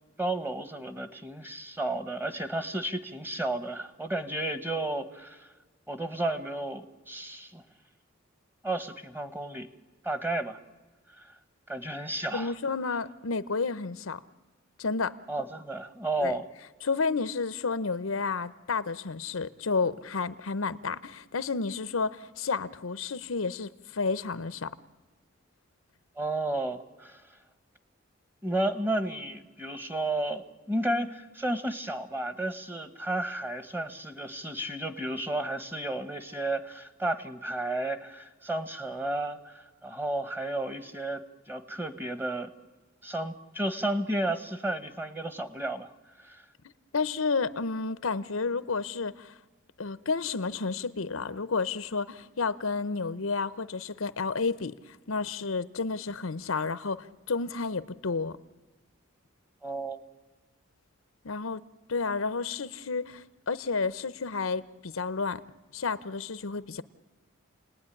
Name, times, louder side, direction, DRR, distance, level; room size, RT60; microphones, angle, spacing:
voice 1, 0.2-5.5 5.9-7.6 8.6-9.7 10.0-10.6 11.2-11.3 11.7-12.5 15.3-16.5 26.2-27.2 28.4-42.5 43.0-45.9 46.2-46.4 59.6-60.0, right 1 dB, 10° right, 1.2 m, -32 dB
voice 2, 12.3-14.2 14.8-15.2 16.2-16.4 16.8-24.7 46.9-49.3 49.8-54.8 55.1-58.4 61.2-61.6 61.9-65.4 65.7-66.8, left 4 dB, 85° left, 0.8 m, -31 dB
29.5 x 19.0 x 9.9 m
head